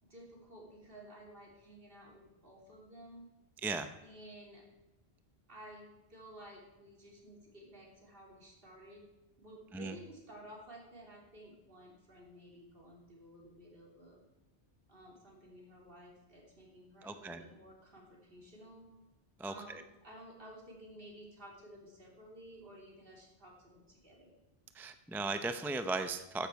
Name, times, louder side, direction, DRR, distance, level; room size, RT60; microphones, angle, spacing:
voice 1, 0.0-3.3 4.0-4.6 5.5-9.0 9.4-14.2 14.9-18.9 19.4-24.3, right 1 dB, 55° right, -2 dB, 3.4 m, -54 dB
voice 2, 17.0-17.4 19.4-19.5 24.8-26.5, right 3 dB, 5° right, 8 dB, 0.4 m, -36 dB
14.0 x 10.5 x 4.7 m, 1.1 s
omnidirectional pair, 1.1 m